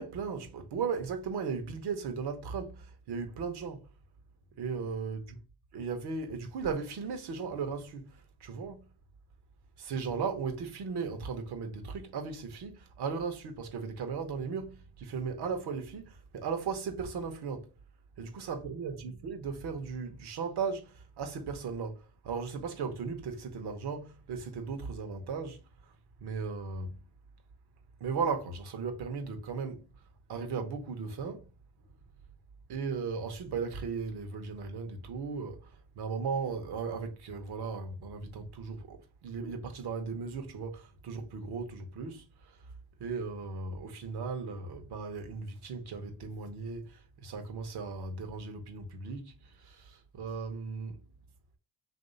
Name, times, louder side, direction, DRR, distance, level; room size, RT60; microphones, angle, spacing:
voice 1, 0.0-3.9 4.6-5.4 5.7-8.8 9.8-17.7 18.2-25.9 26.2-27.0 28.0-29.8 30.3-31.5 32.7-42.7 43.0-51.0, right 5 dB, 70° right, 1.0 m, -37 dB
3.0 x 2.7 x 3.9 m
supercardioid pair, 65°, 41 cm